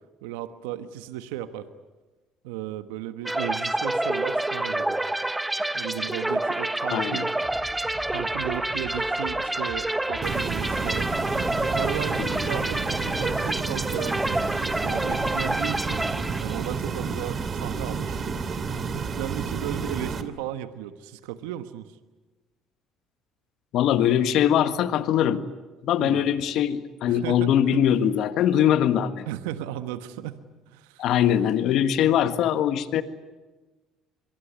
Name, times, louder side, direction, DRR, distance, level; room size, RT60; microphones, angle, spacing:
voice 1, 0.2-1.7 2.4-5.0 5.7-7.3 8.1-11.1 11.6-14.1 14.8-16.0 16.4-18.2 18.9-21.9 26.0-26.2 27.1-27.8 29.3-30.4 30.7-31.1, right 12 dB, 80° right, 10 dB, 1.2 m, -35 dB
sound 1, 3.2-16.8, right 1 dB, 10° right, 1.4 m, -28 dB
sound 2, 4.1-13.7, left 1 dB, 10° left, 6.3 m, -47 dB
voice 2, 6.9-7.3 12.2-12.3 23.7-25.4 25.8-29.3 31.0-33.0, left 10 dB, 65° left, 11 dB, 1.6 m, -22 dB
sound 3, 10.2-20.2, right 5 dB, 45° right, 2.5 m, -30 dB
25.0 x 22.5 x 9.6 m, 1.2 s
hypercardioid pair, 65°, 0 cm